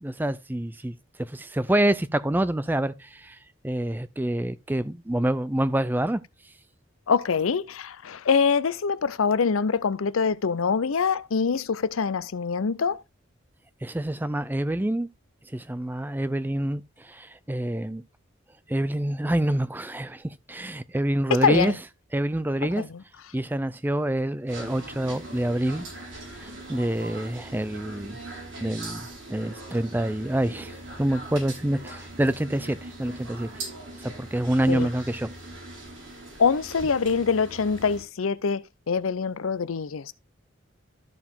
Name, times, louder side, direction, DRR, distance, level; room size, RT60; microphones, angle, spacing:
voice 1, 0.0-3.4 3.6-6.2 13.8-15.1 15.5-18.0 18.7-21.7 22.1-22.8 23.3-25.9 26.4-28.2 28.6-30.7 31.0-33.5 34.0-35.3, right 1 dB, 10° right, 0.4 m, -27 dB
voice 2, 7.1-13.0 21.4-21.8 22.8-23.0 34.7-34.9 36.4-40.1, left 5 dB, 90° left, 0.6 m, -24 dB
sound 1, 24.5-38.0, right 2 dB, 65° right, 5.0 m, -41 dB
13.0 x 4.8 x 3.6 m
head